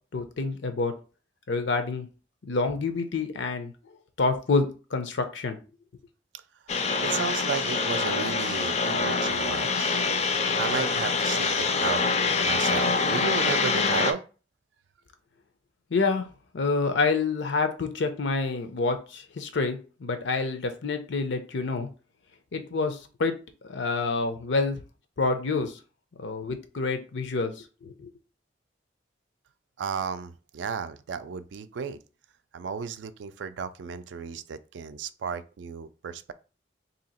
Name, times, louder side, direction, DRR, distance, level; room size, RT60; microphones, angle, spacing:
voice 1, 0.1-0.9 1.5-2.1 2.4-3.7 4.2-5.6 15.9-16.3 16.5-21.9 22.5-23.3 23.6-24.8 25.2-25.8 26.2-28.1, left 3 dB, 80° left, 0.6 m, -27 dB
sound 1, 6.7-14.1, left 4 dB, 35° left, 0.4 m, -25 dB
voice 2, 7.0-9.9 10.6-12.0 12.4-14.2 29.8-32.0 32.5-36.3, right 6 dB, 75° right, 0.3 m, -34 dB
2.8 x 2.8 x 4.1 m
head